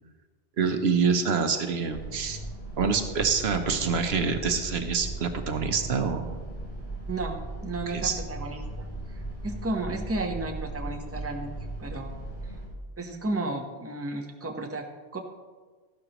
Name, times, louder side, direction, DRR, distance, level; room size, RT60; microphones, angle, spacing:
voice 1, 0.6-2.4 2.8-6.4 7.9-8.2, right 5 dB, 70° right, 7 dB, 1.0 m, -26 dB
sound 1, 1.9-12.7, right 1 dB, 65° left, 3.8 m, -37 dB
voice 2, 7.1-11.5 11.8-12.1 12.4-12.5 13.0-14.8 15.1-15.2, right 2 dB, 15° right, 3 dB, 0.9 m, -33 dB
13.5 x 11.5 x 3.0 m, 1.4 s
omnidirectional pair, 1.1 m